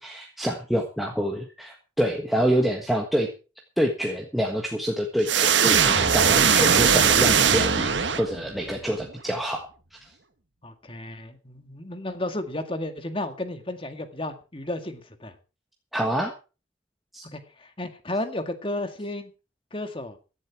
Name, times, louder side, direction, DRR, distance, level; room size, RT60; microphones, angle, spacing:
voice 1, 0.0-3.3 3.8-10.1 15.9-16.3 17.1-17.2, equal, ahead, 1 dB, 1.5 m, -27 dB
sound 1, 5.3-8.6, right 6 dB, 70° right, 1.5 m, -20 dB
voice 2, 6.2-6.8 10.6-15.4 17.3-19.3 19.7-20.2, left 1 dB, 30° left, 8 dB, 1.9 m, -33 dB
16.0 x 11.0 x 4.7 m, 0.34 s
head